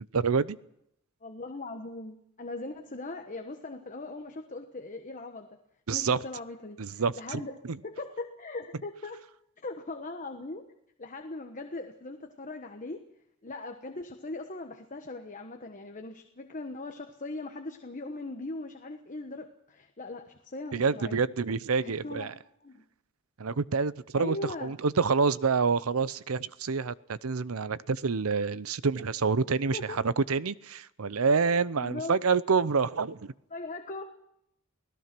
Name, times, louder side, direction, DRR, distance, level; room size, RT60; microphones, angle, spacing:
voice 1, 0.1-0.6 5.9-6.2 6.8-7.8 20.7-22.3 23.4-33.3, right 5 dB, 85° right, 17 dB, 0.7 m, -27 dB
voice 2, 1.2-5.5 5.9-7.5 7.8-9.2 9.6-10.6 11.0-13.0 13.4-21.2 21.8-22.3 22.6-22.8 24.2-24.7 29.7-30.0 31.8-32.2 33.5-34.0, left 2 dB, 35° left, 5 dB, 1.2 m, -40 dB
28.0 x 17.5 x 6.1 m, 0.79 s
head